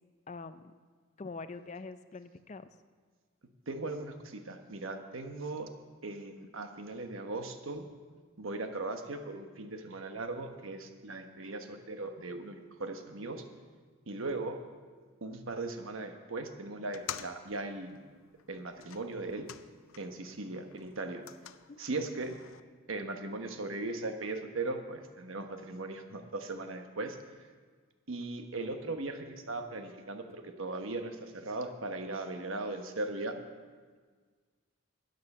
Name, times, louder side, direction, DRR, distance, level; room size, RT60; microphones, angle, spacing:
voice 1, 0.3-0.7 1.2-2.7 21.7-21.8, left 3 dB, 35° left, 12 dB, 0.4 m, -44 dB
voice 2, 3.7-5.7 6.0-7.8 8.4-13.4 14.1-14.6 15.2-18.0 18.5-19.5 20.0-21.2 21.8-22.4 22.9-27.2 28.1-33.4, right 2 dB, 80° right, 6 dB, 1.1 m, -38 dB
sound 1, 16.8-20.3 20.6-22.6, left 9 dB, 85° left, 0.5 m, -48 dB
13.0 x 9.5 x 5.5 m, 1.5 s
head